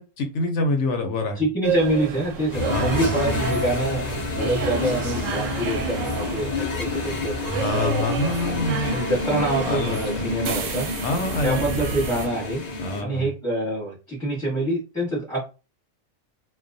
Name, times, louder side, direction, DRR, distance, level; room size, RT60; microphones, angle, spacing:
voice 1, 0.0-1.4 2.7-3.1 7.5-9.0 9.6-10.2 11.0-11.7 12.8-13.3, left 2 dB, 65° left, 4 dB, 0.8 m, -26 dB
voice 2, 1.4-7.4 7.7-8.2 8.8-10.9 11.4-12.6 13.0-15.5, right 1 dB, 5° left, -4 dB, 0.9 m, -26 dB
sound 1, 1.6-12.3, right 7 dB, 70° right, 0.9 m, -31 dB
sound 2, 2.5-13.0, left 3 dB, 90° left, 0.3 m, -29 dB
2.2 x 2.2 x 2.5 m, 0.30 s
omnidirectional pair, 1.5 m